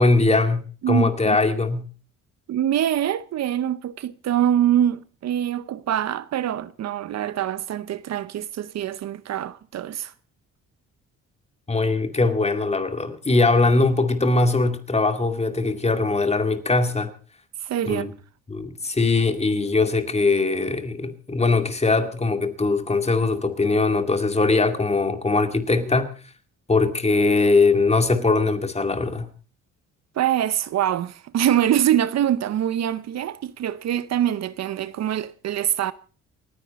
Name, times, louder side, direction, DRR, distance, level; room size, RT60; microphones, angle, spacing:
voice 1, 0.0-1.9 11.7-17.1 17.9-18.1 18.5-26.1 26.7-29.3, left 3 dB, 20° left, 2.3 m, -21 dB
voice 2, 0.8-1.4 2.5-10.1 17.6-18.1 30.1-35.9, right 11 dB, 60° right, 0.7 m, -24 dB
28.5 x 9.7 x 4.1 m
cardioid pair, 90°, 30 cm